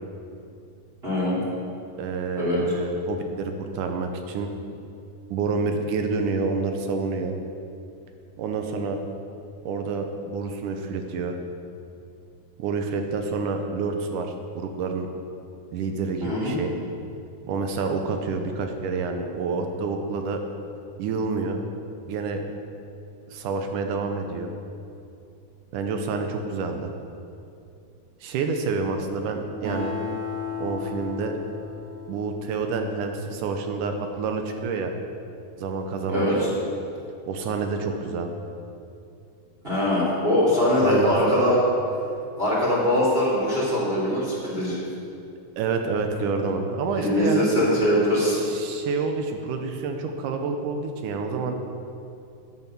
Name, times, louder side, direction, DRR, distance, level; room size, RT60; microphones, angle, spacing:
voice 1, 1.0-1.4 2.4-2.6 16.2-16.5 36.1-36.5 39.6-41.6 42.4-44.8 47.0-48.4, left 1 dB, 15° right, -7 dB, 3.0 m, -22 dB
voice 2, 2.0-4.5 5.3-7.4 8.4-9.0 9.7-11.4 12.6-15.1 15.7-16.7 17.5-20.4 21.0-21.6 22.1-22.4 23.3-24.5 25.7-26.9 28.2-29.9 30.6-31.4 32.1-34.9 35.6-36.3 37.3-38.3 40.8-41.2 45.6-47.5 48.4-51.6, right 4 dB, 75° right, 5 dB, 2.2 m, -28 dB
Acoustic guitar, 29.6-33.4, left 5 dB, 55° right, 3.0 m, -35 dB
10.0 x 9.6 x 6.0 m, 2.6 s
omnidirectional pair, 4.1 m